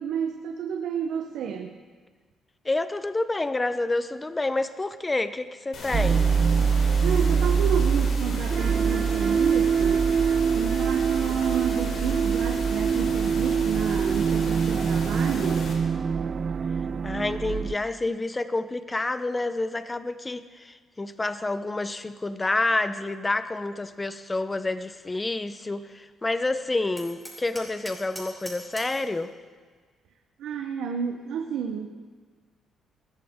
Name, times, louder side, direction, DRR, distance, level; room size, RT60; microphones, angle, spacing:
voice 1, 0.0-1.8 7.0-10.1 10.5-15.7 30.4-32.0, right 7 dB, 80° right, 4 dB, 0.9 m, -30 dB
voice 2, 2.6-6.3 17.0-29.3, left 2 dB, 20° left, 12 dB, 0.8 m, -28 dB
sound 1, 5.7-15.7, left 3 dB, 70° left, 3.6 m, -38 dB
sound 2, 5.9-17.7, right 6 dB, 45° right, 0.5 m, -24 dB
Hammer, 27.0-29.1, right 1 dB, 5° right, 4.3 m, -42 dB
20.5 x 14.0 x 3.7 m, 1.5 s
cardioid pair, 90°, 0 cm